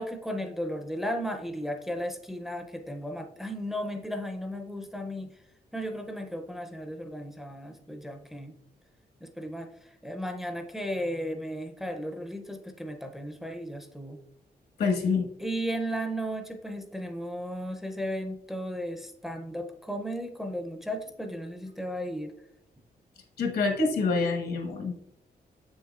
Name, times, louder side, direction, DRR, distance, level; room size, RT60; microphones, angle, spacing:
voice 1, 0.0-5.3 5.7-8.5 9.2-9.7 10.0-14.2 15.4-22.3, equal, ahead, 5 dB, 0.4 m, -35 dB
voice 2, 14.8-15.3 23.4-24.9, left 4 dB, 80° left, 3 dB, 1.3 m, -26 dB
7.4 x 6.3 x 2.3 m, 0.78 s
wide cardioid pair, 175°, 16 cm